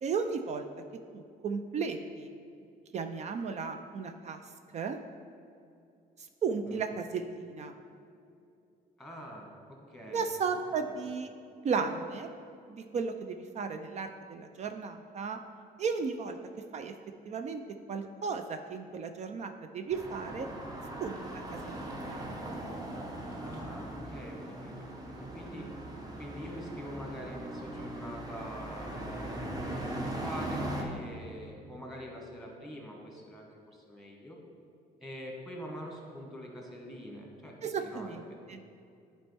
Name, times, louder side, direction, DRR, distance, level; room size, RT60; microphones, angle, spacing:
voice 1, 0.0-0.7 1.1-2.3 2.9-4.4 4.7-5.0 6.4-7.7 10.1-11.3 11.6-12.3 12.7-15.4 15.8-16.4 16.7-16.9 17.3-20.5 21.0-21.8 22.1-22.3 37.6-38.2 38.5-38.6, right 5 dB, 40° right, 7 dB, 0.4 m, -35 dB
voice 2, 9.0-10.3 23.4-25.8 26.2-34.4 35.0-38.6, equal, ahead, -1 dB, 1.5 m, -45 dB
sound 1, 19.9-30.8, right 1 dB, 20° right, 1.0 m, -39 dB
10.0 x 4.3 x 3.4 m, 2.5 s
cardioid pair, 110°, 17 cm